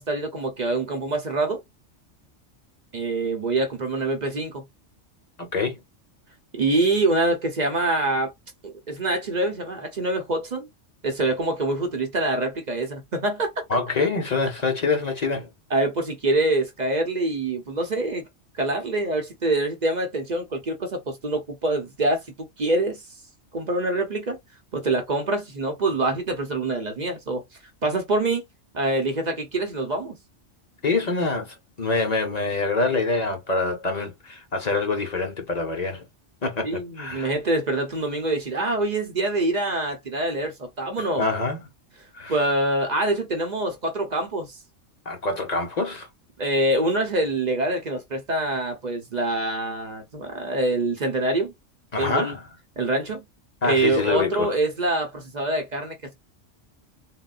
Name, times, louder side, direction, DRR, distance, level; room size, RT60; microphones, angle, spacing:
voice 1, 0.0-1.6 2.9-4.6 6.5-8.3 8.6-10.7 11.0-13.5 15.7-18.2 18.5-22.2 22.6-23.0 23.5-24.4 24.7-27.4 27.8-28.4 28.7-30.2 36.6-41.4 42.3-44.6 46.4-51.5 52.0-52.3 52.8-53.2 53.6-56.1, right 2 dB, 45° right, 0.7 m, -25 dB
voice 2, 5.4-5.8 13.7-15.5 30.8-36.0 36.4-37.3 41.2-41.6 42.1-42.4 45.1-46.1 51.9-52.4 53.6-54.5, left 3 dB, 40° left, 0.7 m, -25 dB
3.8 x 2.2 x 2.3 m
omnidirectional pair, 1.3 m